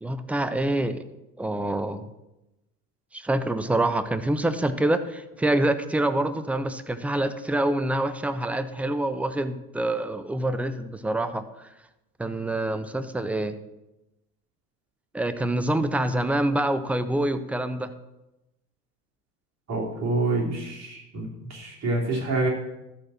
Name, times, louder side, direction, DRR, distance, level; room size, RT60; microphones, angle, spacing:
voice 1, 0.0-1.0 1.4-2.1 3.1-11.7 12.2-13.5 15.1-17.9, right 1 dB, 5° right, 11 dB, 0.4 m, -26 dB
voice 2, 19.7-22.5, right 2 dB, 35° right, -3 dB, 3.4 m, -27 dB
13.0 x 4.4 x 6.3 m, 0.94 s
figure-of-eight pair, 75°, 48 cm